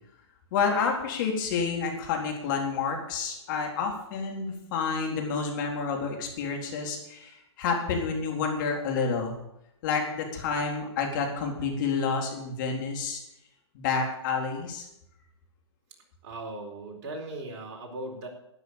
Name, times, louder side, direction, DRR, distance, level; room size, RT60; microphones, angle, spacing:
voice 1, 0.5-9.4 9.8-13.2 13.7-14.9, left 5 dB, 45° left, 1 dB, 4.0 m, -29 dB
voice 2, 16.2-18.3, right 2 dB, 45° right, 0 dB, 4.6 m, -38 dB
12.5 x 9.8 x 7.2 m, 0.83 s
hypercardioid pair, 125°, 15 cm